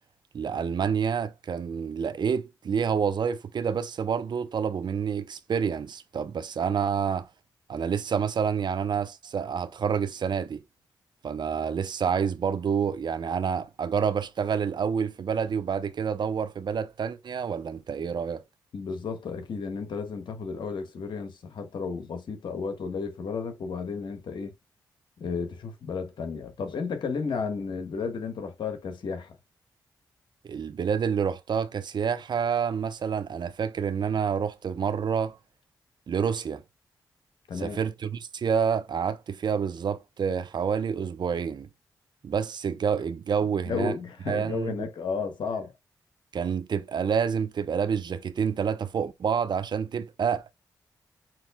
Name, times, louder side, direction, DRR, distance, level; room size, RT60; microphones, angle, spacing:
voice 1, 0.3-7.3 7.7-10.6 11.2-18.4 30.4-35.4 36.1-36.6 37.6-41.7 42.2-43.9 44.3-44.7 46.3-50.4, right 7 dB, 65° right, 0.7 m, -28 dB
voice 2, 18.7-24.5 25.2-29.4 37.5-37.8 43.6-45.7, left 5 dB, 70° left, 1.3 m, -33 dB
7.6 x 3.1 x 2.2 m
supercardioid pair, 40°, 8 cm